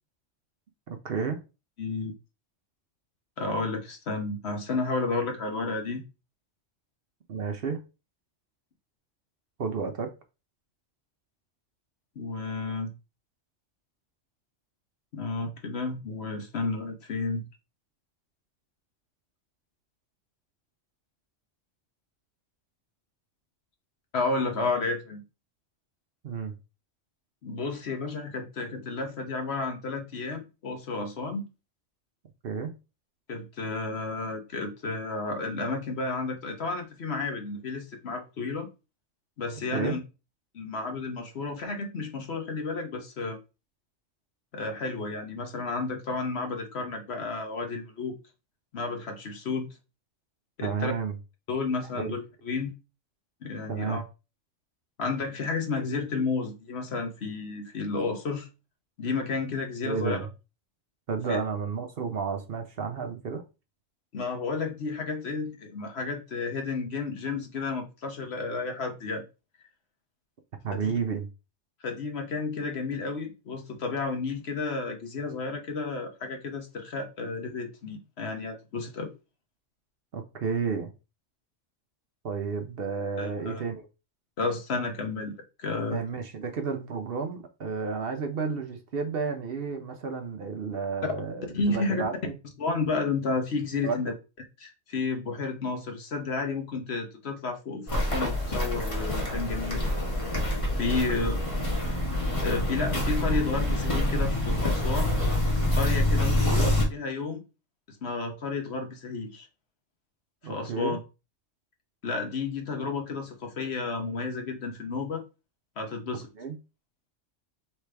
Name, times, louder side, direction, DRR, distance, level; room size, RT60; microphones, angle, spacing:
voice 1, 0.9-1.4 7.3-7.8 9.6-10.1 26.2-26.5 32.4-32.8 39.7-40.0 50.6-51.1 52.0-52.1 53.7-54.0 59.8-60.3 61.1-63.4 70.6-71.3 80.1-80.9 82.2-83.9 85.9-92.4 93.8-94.1 101.2-101.3 106.5-106.7 110.4-111.0 116.3-116.6, right 5 dB, 55° right, 0.8 m, -31 dB
voice 2, 1.8-2.1 3.4-6.0 12.2-12.9 15.1-17.4 24.1-25.2 27.4-31.4 33.3-38.7 39.4-40.0 40.5-43.4 44.5-48.1 48.7-49.7 50.6-50.9 51.5-52.7 53.4-54.0 55.0-58.5 59.0-60.2 61.3-61.4 64.1-69.2 70.7-70.9 71.8-79.1 83.2-83.6 84.4-85.3 85.6-86.0 91.5-92.0 92.6-94.1 94.6-99.9 100.7-101.3 102.4-105.1 105.7-107.4 108.0-109.5 110.4-111.0 112.0-115.2 115.8-116.3, left 3 dB, 60° left, 1.1 m, -32 dB
Walk footsteps, 97.9-106.8, left 1 dB, 25° left, 1.4 m, -26 dB
4.8 x 3.3 x 3.3 m
omnidirectional pair, 1.3 m